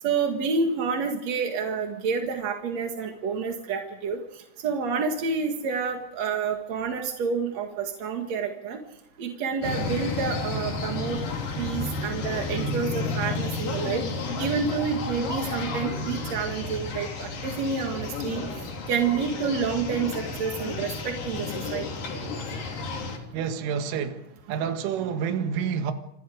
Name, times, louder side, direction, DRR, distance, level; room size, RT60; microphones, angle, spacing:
voice 1, 0.0-4.2 4.6-8.8 9.2-11.2 11.6-14.0 14.4-21.9, right 5 dB, 50° right, 2.1 m, -29 dB
sound 1, 9.6-23.2, left 3 dB, 45° left, 4.4 m, -32 dB
voice 2, 23.3-25.9, right 7 dB, 75° right, 4.1 m, -29 dB
28.5 x 26.5 x 5.0 m
omnidirectional pair, 5.8 m